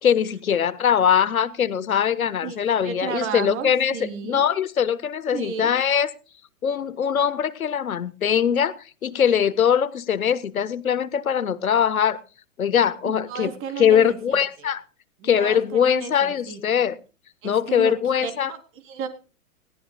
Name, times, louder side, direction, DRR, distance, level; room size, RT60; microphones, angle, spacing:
voice 1, 0.0-4.0 4.2-6.1 6.6-8.7 9.0-12.2 12.6-13.5 13.8-14.8 15.2-17.0 17.4-18.5, left 8 dB, 70° left, 17 dB, 1.4 m, -21 dB
voice 2, 2.4-4.4 5.3-5.8 13.0-14.7 15.2-16.6 17.4-19.1, right 6 dB, 30° right, 8 dB, 3.5 m, -34 dB
19.5 x 17.5 x 2.3 m, 0.34 s
figure-of-eight pair, 115°, 43 cm